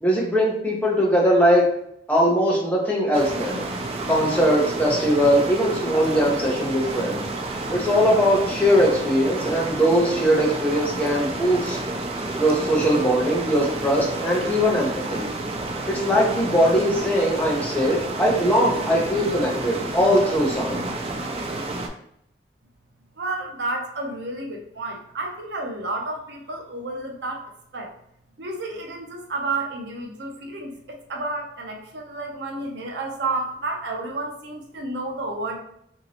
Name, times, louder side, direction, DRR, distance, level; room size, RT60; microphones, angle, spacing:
voice 1, 0.0-1.7 2.1-3.6 4.1-7.2 7.7-11.8 12.4-15.2 15.9-20.9, equal, 10° left, -3 dB, 0.7 m, -20 dB
sound 1, 3.1-21.9, right 2 dB, 35° right, 0.3 m, -30 dB
voice 2, 23.2-27.9 28.4-35.6, right 2 dB, 75° right, 2 dB, 0.6 m, -31 dB
2.9 x 2.7 x 2.8 m, 0.73 s
head